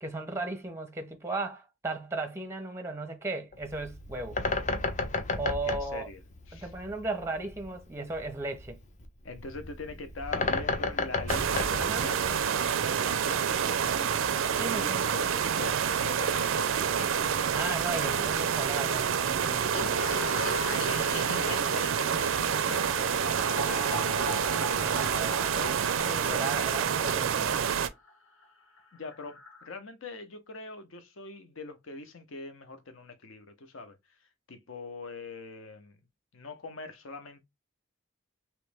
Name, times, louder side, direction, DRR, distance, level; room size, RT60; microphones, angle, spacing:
voice 1, 0.0-4.4 5.4-6.1 6.5-8.8 11.8-12.1 14.6-15.1 17.5-20.0 24.8-25.8 26.0-27.7, right 2 dB, 15° right, 0.6 m, -36 dB
Bird, 3.5-12.7, left 3 dB, 35° left, 0.6 m, -33 dB
voice 2, 5.6-6.2 6.5-6.7 9.2-15.3 15.6-16.7 17.0-17.5 20.0-22.3 22.7-24.5 25.4-25.5 26.3-26.4 28.9-36.0 36.3-37.4, left 3 dB, 65° left, 0.8 m, -42 dB
sound 1, 11.3-27.9, right 7 dB, 70° right, 0.4 m, -28 dB
sound 2, 19.6-27.8 28.1-28.2 28.4-28.5 28.8-28.9 29.1-29.6, left 2 dB, 85° left, 1.3 m, -40 dB
3.0 x 3.0 x 3.4 m
head